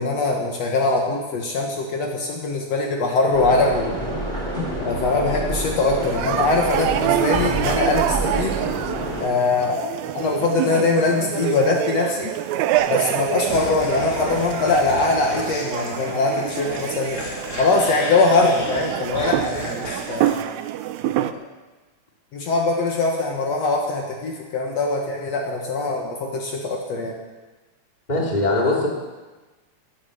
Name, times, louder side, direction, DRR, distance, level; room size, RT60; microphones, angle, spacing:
voice 1, 0.0-4.0 4.8-8.6 9.2-12.3 12.9-17.2 17.6-20.4 21.2-21.4 22.3-27.1, left 3 dB, 65° left, 0 dB, 2.5 m, -22 dB
sound 1, 3.3-9.2, right 1 dB, 10° right, 3.1 m, -28 dB
sound 2, 6.0-21.3, right 12 dB, 80° right, 1.9 m, -26 dB
sound 3, 12.7-20.3, left 2 dB, 30° left, 2.6 m, -33 dB
voice 2, 28.1-28.9, left 2 dB, 15° left, -2 dB, 2.5 m, -20 dB
14.5 x 8.8 x 8.0 m, 1.2 s
omnidirectional pair, 3.4 m